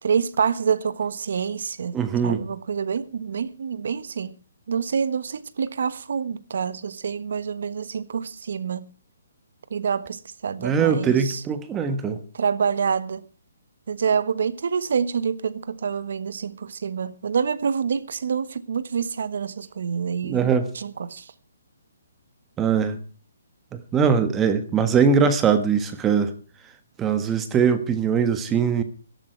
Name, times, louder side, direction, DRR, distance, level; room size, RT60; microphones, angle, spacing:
voice 1, 0.0-2.0 2.2-4.4 4.7-8.9 9.7-11.4 12.3-13.2 13.9-21.3, right 6 dB, 65° right, 1.3 m, -27 dB
voice 2, 1.9-2.4 10.6-12.2 20.2-20.6 22.6-23.0 23.9-26.3 27.0-28.8, right 6 dB, 15° right, 1.4 m, -21 dB
18.0 x 12.5 x 4.6 m
hypercardioid pair, 155°, 0 cm